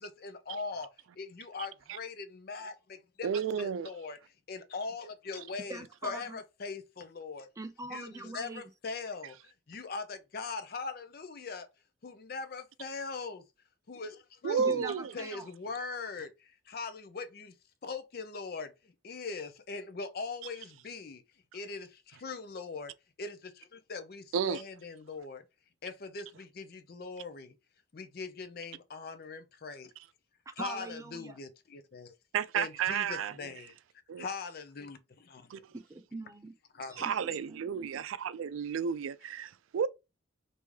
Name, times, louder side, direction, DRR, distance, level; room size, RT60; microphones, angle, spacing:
voice 1, 0.0-3.3 3.6-4.2 4.5-7.5 7.9-11.7 12.0-13.4 13.9-14.8 15.1-17.5 17.8-21.2 21.5-22.9 23.2-25.4 25.8-27.5 27.9-29.9 30.6-32.1 32.5-33.7 34.2-35.6 36.7-37.1, left 4 dB, 50° left, 0.5 m, -41 dB
voice 2, 3.2-3.9 14.4-15.1 24.3-24.6 32.3-33.3 34.1-34.3 35.5-35.6 37.0-39.9, right 7 dB, 90° right, 0.3 m, -32 dB
voice 3, 5.7-6.4 7.6-8.7 14.6-15.5 30.6-31.3 35.7-36.5 36.9-37.2 37.5-37.6, right 2 dB, 15° right, 0.4 m, -42 dB
3.1 x 2.7 x 3.4 m
head